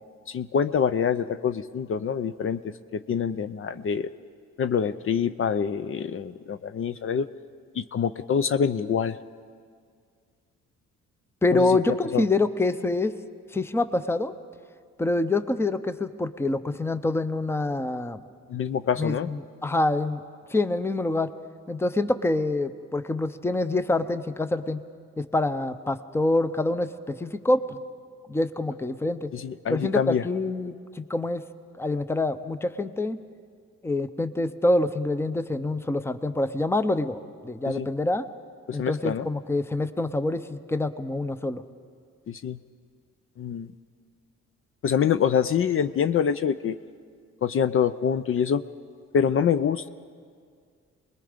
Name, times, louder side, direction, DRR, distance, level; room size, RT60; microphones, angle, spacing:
voice 1, 0.3-2.6 2.9-4.1 4.6-7.3 7.8-9.2 11.5-11.8 12.1-12.2 18.5-19.3 29.3-30.2 37.7-37.9 38.7-39.3 42.3-42.6 43.4-43.7 44.8-46.8 47.4-48.6 49.1-49.9, left 7 dB, 45° left, 12 dB, 0.5 m, -25 dB
voice 2, 11.4-13.1 13.5-14.3 15.0-18.2 19.0-20.2 20.5-21.3 21.7-24.8 25.2-27.8 28.3-29.3 29.7-31.4 31.8-33.2 33.8-38.3 38.7-41.6, left 2 dB, 10° left, 12 dB, 0.7 m, -26 dB
26.0 x 20.5 x 5.1 m, 2.1 s
cardioid pair, 90°, 30 cm